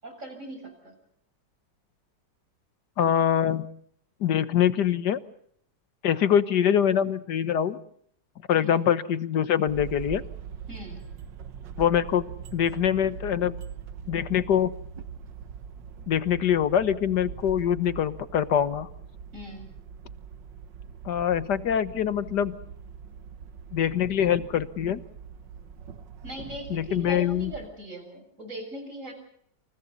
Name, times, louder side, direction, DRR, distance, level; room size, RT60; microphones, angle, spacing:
voice 1, 0.0-1.0 8.5-8.9 10.7-11.0 19.3-19.7 26.2-29.1, equal, 40° right, 5 dB, 7.5 m, -40 dB
voice 2, 3.0-3.7 4.2-5.2 6.0-7.8 8.5-10.2 11.8-12.2 12.5-13.6 14.1-14.7 16.1-18.9 21.1-22.6 23.7-25.0 26.7-27.5, left 9 dB, 65° left, 12 dB, 1.8 m, -24 dB
sound 1, 9.7-27.7, right 7 dB, 80° right, 1.8 m, -42 dB
29.0 x 28.0 x 4.1 m, 0.67 s
omnidirectional pair, 2.0 m